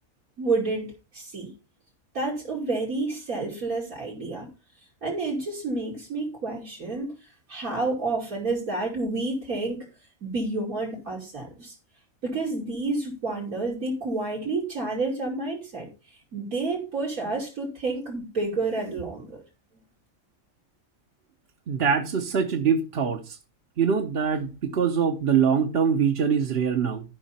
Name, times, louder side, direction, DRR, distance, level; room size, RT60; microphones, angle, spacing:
voice 1, 0.4-1.5 2.1-4.5 5.0-7.1 7.5-9.9 10.2-11.7 12.2-15.9 16.3-19.4, right 3 dB, 85° right, 3.3 m, -29 dB
voice 2, 21.7-23.4 23.8-27.0, right 7 dB, 50° right, 1.1 m, -23 dB
13.5 x 5.5 x 4.2 m
omnidirectional pair, 1.5 m